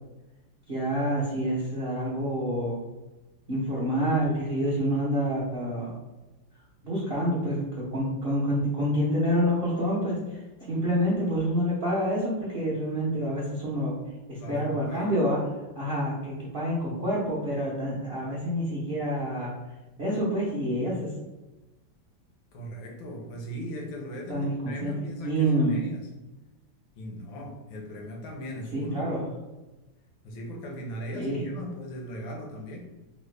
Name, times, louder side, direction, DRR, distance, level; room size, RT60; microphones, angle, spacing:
voice 1, 0.7-2.8 3.5-6.0 6.8-13.9 14.3-15.4 15.7-19.5 20.0-21.1 24.3-24.9 25.2-25.8 28.7-29.2 31.1-31.4, equal, 70° right, -6 dB, 0.5 m, -27 dB
voice 2, 14.4-15.1 22.5-26.1 26.9-29.1 30.2-32.8, equal, 80° left, 1 dB, 1.5 m, -38 dB
3.9 x 2.0 x 3.2 m, 1.1 s
omnidirectional pair, 2.1 m